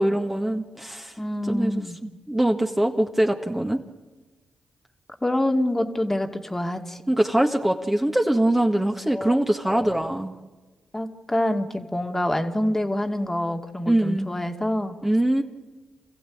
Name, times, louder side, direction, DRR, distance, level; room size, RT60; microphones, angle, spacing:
voice 1, 0.0-1.1 1.5-3.8 7.1-10.3 13.9-14.3 15.0-15.4, right 1 dB, 15° right, 2 dB, 1.8 m, -23 dB
voice 2, 1.2-2.0 5.2-7.0 9.1-10.1 10.9-15.0, left 1 dB, 15° left, 5 dB, 2.3 m, -26 dB
27.5 x 15.0 x 8.7 m, 1.2 s
supercardioid pair, 50°, 2 cm